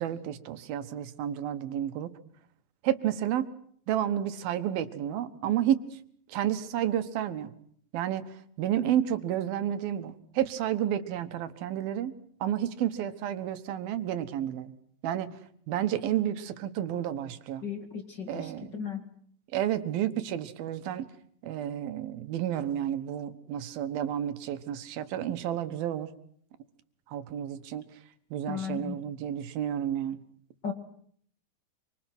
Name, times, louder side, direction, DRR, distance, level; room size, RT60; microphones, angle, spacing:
voice 1, 0.0-2.2 2.8-3.5 3.9-5.8 6.3-7.5 7.9-12.1 12.4-14.7 15.0-15.4 15.7-17.7 18.3-18.8 19.5-21.1 21.4-26.1 27.1-27.8 28.3-30.2, right 11 dB, 85° right, 11 dB, 3.2 m, -31 dB
voice 2, 17.6-19.0 28.5-29.0 30.6-30.7, left 7 dB, 35° left, 6 dB, 2.4 m, -35 dB
26.5 x 25.0 x 6.1 m, 0.62 s
omnidirectional pair, 4.1 m